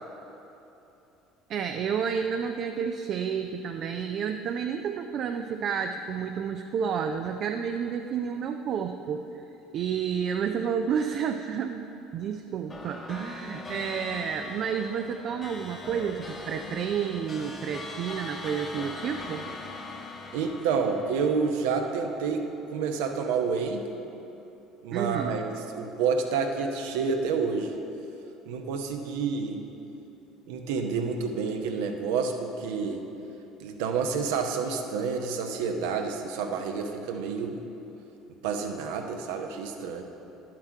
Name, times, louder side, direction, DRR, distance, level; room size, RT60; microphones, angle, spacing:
voice 1, 1.5-9.3 9.7-19.5 24.9-25.3, right 7 dB, 50° right, 6 dB, 0.4 m, -30 dB
sound 1, 12.7-22.3, left 3 dB, 30° left, 1.2 m, -41 dB
voice 2, 20.3-23.8 24.8-27.7 28.5-29.6 30.5-33.0 33.6-37.6 38.4-40.0, right 5 dB, 70° right, 4 dB, 0.8 m, -29 dB
11.0 x 7.5 x 4.5 m, 3.0 s
hypercardioid pair, 65°, 0 cm